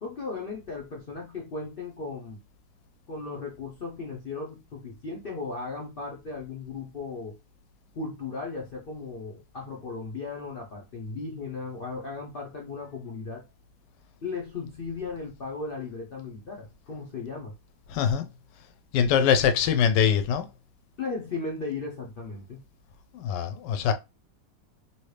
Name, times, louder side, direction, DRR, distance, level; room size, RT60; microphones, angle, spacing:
voice 1, 0.0-2.4 3.1-7.4 7.9-13.4 14.2-17.5 21.0-22.6, left 4 dB, 60° left, 0.5 m, -36 dB
voice 2, 17.9-18.3 18.9-20.5 23.1-23.9, left 7 dB, 90° left, 1.2 m, -23 dB
3.0 x 2.8 x 3.2 m
omnidirectional pair, 1.8 m